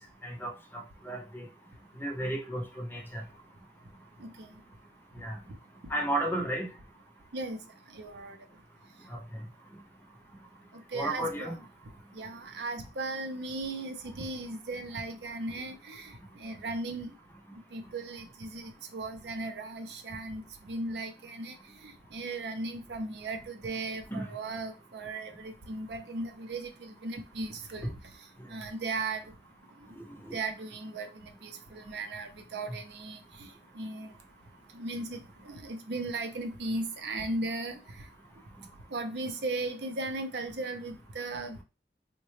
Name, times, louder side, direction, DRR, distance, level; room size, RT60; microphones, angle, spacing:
voice 1, 0.2-1.5 2.0-3.2 5.2-5.4 5.9-6.7 9.1-9.2 10.9-11.5 24.1-24.2 30.2-30.4, right 1 dB, 10° left, 0.6 m, -33 dB
voice 2, 7.9-8.4 10.9-11.6 12.1-16.1 16.4-17.1 17.7-20.4 20.7-21.5 22.1-27.9 28.5-29.2 30.3-31.1 31.4-33.2 33.8-34.1 34.7-37.8 38.9-41.6, right 2 dB, 70° right, 0.6 m, -36 dB
3.8 x 2.2 x 3.1 m
head